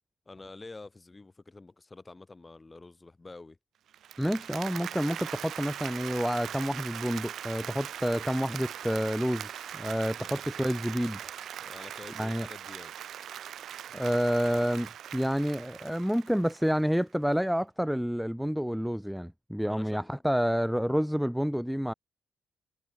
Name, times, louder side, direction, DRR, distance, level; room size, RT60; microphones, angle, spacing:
voice 1, 0.3-3.6 10.2-10.4 11.7-12.9 19.6-20.2, left 3 dB, 20° left, 3.9 m, -48 dB
Applause, 3.9-17.0, right 10 dB, 70° right, 0.9 m, -41 dB
voice 2, 4.2-11.2 12.2-12.5 13.9-21.9, equal, ahead, 0.3 m, -29 dB
cardioid pair, 90°, 0 cm